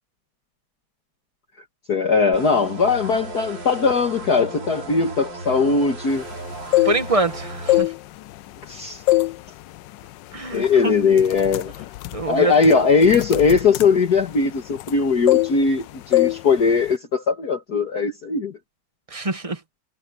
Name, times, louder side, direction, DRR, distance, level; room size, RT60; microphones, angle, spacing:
voice 1, 1.9-6.2 8.7-9.0 10.5-11.7 12.3-18.5, left 5 dB, 55° left, 2.3 m, -19 dB
sound 1, 2.3-7.8, right 2 dB, 65° right, 4.2 m, -35 dB
sound 2, 6.5-7.3 7.6-8.7 9.1-9.4 9.8-10.0 10.6-10.8 11.1-15.0 15.3-15.8 16.1-16.4 16.7-17.0, left 17 dB, 75° left, 1.2 m, -22 dB
voice 2, 6.8-7.9 10.3-10.9 12.1-12.5 19.1-19.6, right 2 dB, 20° right, 1.2 m, -24 dB
omnidirectional pair, 2.1 m